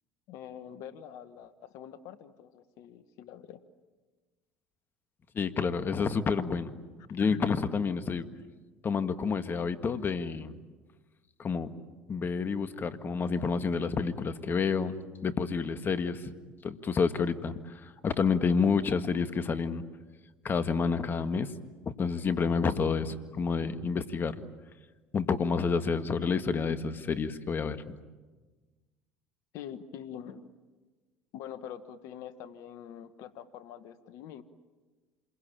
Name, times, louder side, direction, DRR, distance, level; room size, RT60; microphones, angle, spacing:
voice 1, 0.3-3.6 7.2-7.5 29.5-30.5 31.3-34.4, left 9 dB, 65° left, 13 dB, 1.3 m, -44 dB
voice 2, 5.3-6.7 7.1-8.3 8.8-10.5 11.4-11.7 12.1-16.3 16.6-19.8 20.4-21.5 21.8-24.4 25.1-28.0, left 5 dB, 35° left, 10 dB, 1.8 m, -29 dB
27.5 x 22.5 x 8.9 m, 1.3 s
hypercardioid pair, 75°, 6 cm